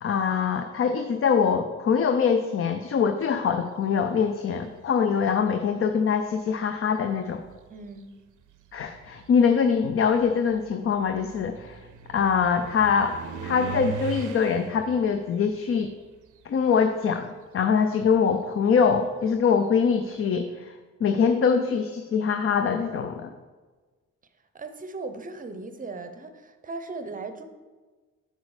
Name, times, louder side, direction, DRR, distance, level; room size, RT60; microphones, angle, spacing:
voice 1, 0.0-7.4 8.7-15.9 16.4-20.8 21.0-23.3, left 6 dB, 45° left, 7 dB, 0.5 m, -23 dB
sound 1, 5.0-5.5 6.5-6.6 7.2-17.1 17.4-20.0, right 8 dB, 80° right, 0.6 m, -41 dB
voice 2, 7.7-8.1 24.5-27.4, right 3 dB, 25° right, 8 dB, 0.6 m, -37 dB
8.2 x 5.2 x 4.8 m, 1.4 s
wide cardioid pair, 155°, 30 cm